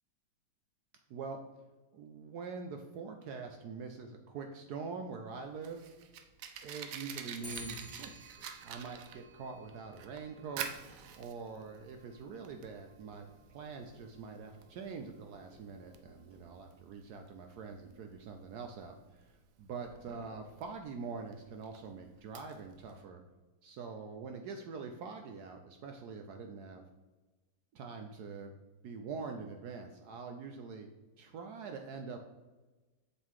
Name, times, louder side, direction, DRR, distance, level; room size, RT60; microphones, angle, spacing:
voice 1, 1.9-5.8 6.6-8.2 8.6-10.7 11.2-23.2 23.6-26.8 27.7-28.5 28.8-30.9 31.2-32.2, right 5 dB, 70° right, 4 dB, 1.0 m, -44 dB
Fire, 5.3-23.0, right 8 dB, 90° right, 0.7 m, -48 dB
Clock, 7.4-16.8, equal, 15° right, 1.2 m, -55 dB
6.5 x 3.7 x 4.6 m, 1.2 s
omnidirectional pair, 2.0 m